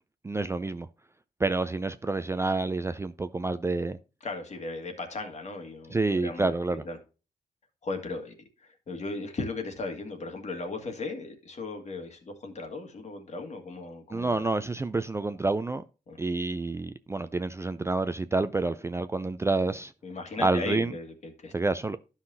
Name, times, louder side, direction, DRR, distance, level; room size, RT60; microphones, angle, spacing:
voice 1, 0.2-0.9 1.4-4.0 5.9-6.8 14.1-15.8 16.2-19.9 20.4-20.9 21.5-22.0, right 3 dB, 15° right, 0.4 m, -28 dB
voice 2, 4.2-7.0 7.8-14.4 16.1-16.2 19.6-19.7 20.0-21.5, left 3 dB, 45° left, 1.9 m, -37 dB
12.0 x 5.7 x 2.7 m
cardioid pair, 100°, 16 cm